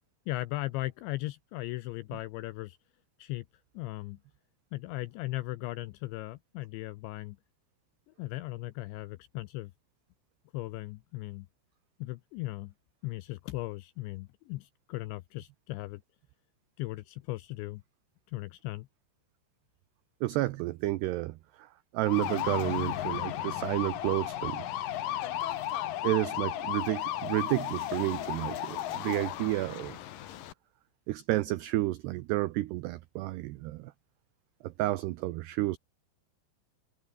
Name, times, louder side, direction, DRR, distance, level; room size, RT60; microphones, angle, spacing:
voice 1, 0.3-2.8 3.2-3.5 3.7-4.2 4.7-7.4 8.2-9.7 10.5-11.5 12.0-12.7 13.0-16.0 16.8-17.8 18.3-18.9, left 18 dB, 80° left, 2.8 m, -37 dB
voice 2, 20.2-24.7 26.0-30.0 31.1-33.9 34.6-35.8, right 18 dB, 90° right, 2.3 m, -31 dB
sound 1, 22.0-30.5, left 12 dB, 65° left, 2.3 m, -34 dB
omnidirectional pair, 5.8 m